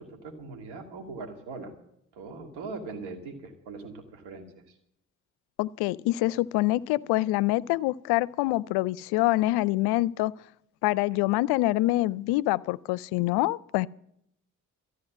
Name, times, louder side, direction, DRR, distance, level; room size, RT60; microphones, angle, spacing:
voice 1, 0.0-1.7 2.1-4.8, right 3 dB, 75° right, 2.2 m, -41 dB
voice 2, 5.6-10.3 10.8-13.9, left 18 dB, 70° left, 0.5 m, -25 dB
13.5 x 9.4 x 7.4 m
hypercardioid pair, 45°, 41 cm